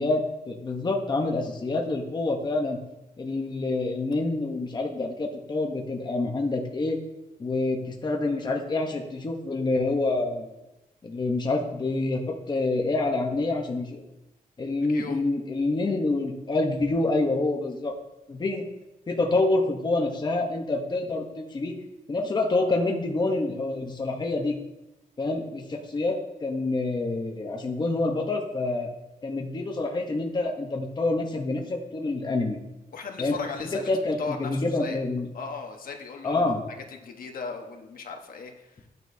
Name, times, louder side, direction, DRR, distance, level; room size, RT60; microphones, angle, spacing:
voice 1, 0.0-2.8 3.2-7.0 7.4-10.5 11.0-14.0 14.6-17.9 18.3-18.6 19.1-21.8 22.1-24.6 25.2-28.9 29.2-32.6 33.2-33.4 33.7-35.3 36.2-36.6, left 2 dB, 30° left, 1 dB, 0.9 m, -27 dB
voice 2, 32.9-33.8 34.2-35.0 35.3-36.5 36.9-38.9, left 4 dB, 70° left, 3 dB, 1.2 m, -37 dB
13.5 x 9.3 x 2.7 m, 0.98 s
wide cardioid pair, 160°, 15 cm